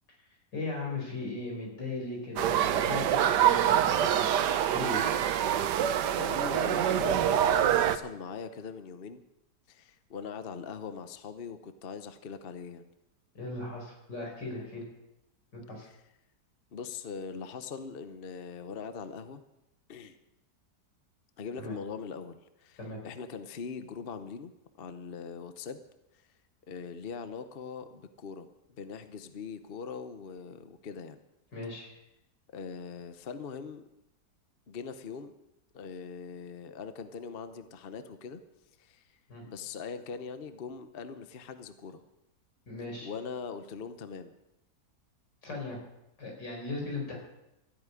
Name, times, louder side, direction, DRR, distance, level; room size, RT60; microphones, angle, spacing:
voice 1, 0.5-5.1 13.4-14.8 15.5-15.9 21.6-21.8 22.8-23.0 31.5-31.9 39.3-39.4 42.7-43.1 45.4-45.8 46.2-47.2, left 2 dB, 85° left, 0 dB, 5.5 m, -38 dB
sound 1, 2.4-8.0, right 10 dB, 80° right, 1.4 m, -25 dB
voice 2, 6.2-9.2 9.7-12.9 16.7-19.4 19.9-20.2 21.4-24.5 24.8-25.8 26.7-31.2 32.5-33.8 34.7-35.3 35.7-38.4 38.8-39.0 39.4-42.0 43.0-44.3, left 5 dB, 40° left, 10 dB, 0.9 m, -41 dB
13.5 x 8.7 x 9.8 m, 0.88 s
omnidirectional pair, 1.8 m